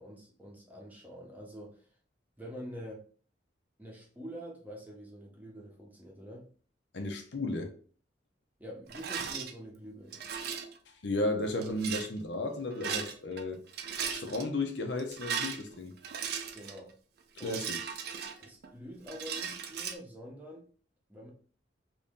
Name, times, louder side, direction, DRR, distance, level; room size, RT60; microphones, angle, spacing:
voice 1, 0.0-1.9 2.4-3.0 3.8-6.5 8.6-10.2 16.5-16.9 17.4-17.7 18.4-20.6 21.1-21.3, equal, 10° right, 0.8 m, -46 dB
voice 2, 6.9-7.7 11.0-13.6 14.1-15.9 17.4-17.8, left 2 dB, 70° left, 0.7 m, -34 dB
Rattle, 8.9-9.5 10.1-10.8 11.6-12.1 12.7-13.4 13.7-14.4 15.0-16.8 17.4-18.7 19.1-19.9, right 7 dB, 55° right, 0.5 m, -37 dB
3.0 x 2.7 x 3.6 m
head